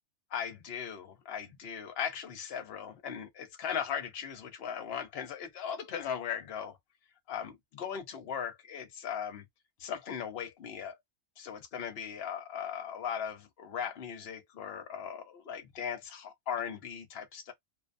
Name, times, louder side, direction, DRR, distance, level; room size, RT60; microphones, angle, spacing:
voice 1, 0.3-6.8 7.3-9.4 9.8-11.0 11.4-17.5, left 8 dB, 55° left, 0.8 m, -38 dB
2.6 x 2.1 x 2.5 m
omnidirectional pair, 1.5 m